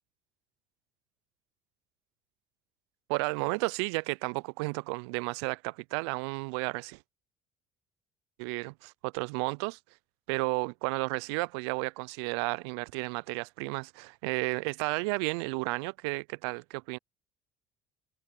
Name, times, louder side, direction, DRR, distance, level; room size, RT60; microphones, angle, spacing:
voice 1, 3.1-7.0 8.4-9.8 10.3-17.0, right 30 dB, 75° right, 0.5 m, -32 dB
hypercardioid pair, 60°, 14 cm